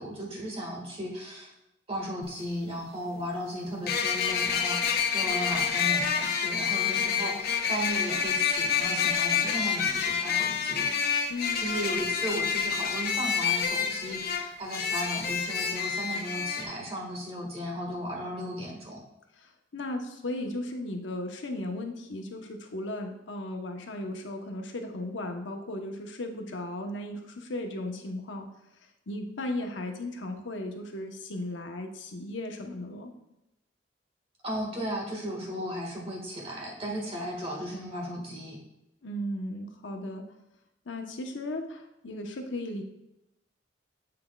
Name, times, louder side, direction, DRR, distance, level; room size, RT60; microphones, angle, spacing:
voice 1, 0.0-1.5 1.9-10.9 11.6-19.0 34.4-38.6, equal, 30° right, -1 dB, 1.5 m, -35 dB
sound 1, 2.2-2.3 3.9-16.6, left 7 dB, 60° left, 0.7 m, -28 dB
voice 2, 11.3-11.6 19.4-28.5 29.1-33.1 39.0-40.2 40.9-42.8, left 1 dB, 90° left, 3 dB, 0.9 m, -36 dB
7.4 x 6.0 x 2.3 m, 0.90 s
head